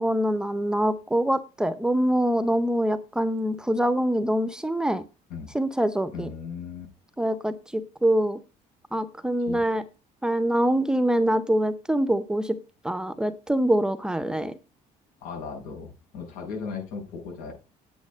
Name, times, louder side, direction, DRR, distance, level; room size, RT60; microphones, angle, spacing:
voice 1, 0.0-5.0 5.5-6.3 7.2-8.4 8.9-9.8 10.2-12.6 12.8-14.5, right 1 dB, 5° right, 12 dB, 0.7 m, -24 dB
voice 2, 6.1-6.9 9.5-9.7 15.2-17.5, left 5 dB, 85° left, 1 dB, 7.8 m, -36 dB
8.9 x 8.7 x 5.1 m, 0.32 s
cardioid pair, 165°, 14 cm